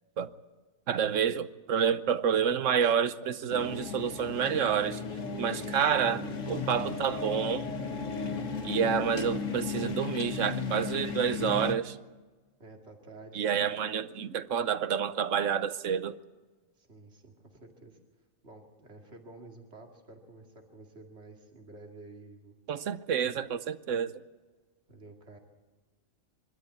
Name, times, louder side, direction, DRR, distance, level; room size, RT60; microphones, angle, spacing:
voice 1, 0.9-5.0 5.4-7.7 8.6-12.0 13.3-16.2 22.7-24.1, right 8 dB, 70° right, 1.1 m, -29 dB
sound 1, 3.5-11.7, left 4 dB, 70° left, 1.6 m, -35 dB
voice 2, 12.6-13.7 16.8-18.0 18.4-22.5 24.9-25.4, right 2 dB, 50° right, 2.7 m, -51 dB
24.0 x 13.0 x 8.4 m
omnidirectional pair, 1.4 m